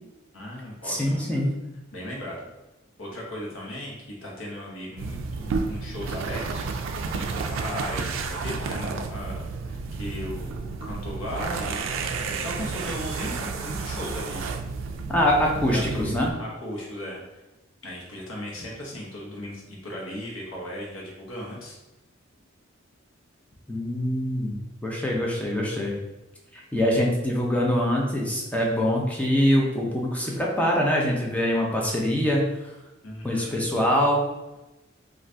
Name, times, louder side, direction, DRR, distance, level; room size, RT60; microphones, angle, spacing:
voice 1, 0.3-1.3 1.9-2.5 3.0-6.7 7.0-14.5 15.4-17.4 17.8-21.8 33.0-33.6, left 1 dB, 90° left, -3 dB, 0.9 m, -37 dB
voice 2, 0.9-1.5 15.1-16.3 23.7-24.5 24.8-25.9 26.5-32.5 33.2-34.2, equal, 5° left, -2 dB, 0.6 m, -24 dB
sound 1, 5.0-16.3, right 4 dB, 75° right, 0.3 m, -31 dB
2.6 x 2.4 x 3.3 m, 1.0 s
head